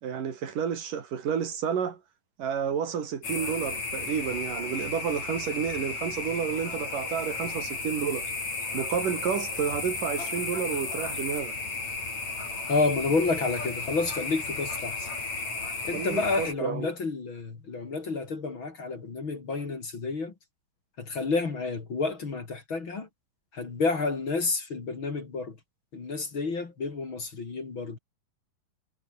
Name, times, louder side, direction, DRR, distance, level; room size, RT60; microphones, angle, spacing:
voice 1, 0.0-2.0 2.4-8.3 8.7-11.5 15.9-16.9, right 7 dB, 75° right, 4.3 m, -30 dB
sound 1, 3.2-16.5, left 3 dB, 55° left, 8.4 m, -34 dB
voice 2, 12.7-15.1 15.9-20.3 21.0-23.1 23.5-25.6 25.9-28.0, left 3 dB, 40° left, 3.5 m, -30 dB
omnidirectional pair, 3.9 m